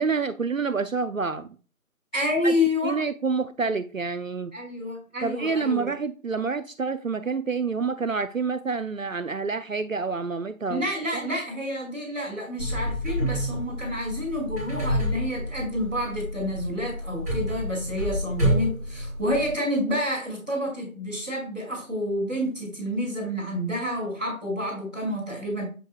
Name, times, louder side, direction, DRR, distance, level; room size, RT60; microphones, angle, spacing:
voice 1, 0.0-1.5 2.4-2.5 2.8-4.5 5.2-10.8, right 4 dB, 65° right, 0.6 m, -28 dB
voice 2, 2.1-2.9 4.5-5.9 10.7-25.6, left 1 dB, 5° left, 3.3 m, -29 dB
sound 1, 12.6-19.5, equal, 10° right, 3.5 m, -29 dB
7.9 x 7.7 x 2.3 m
figure-of-eight pair, 170°, 42 cm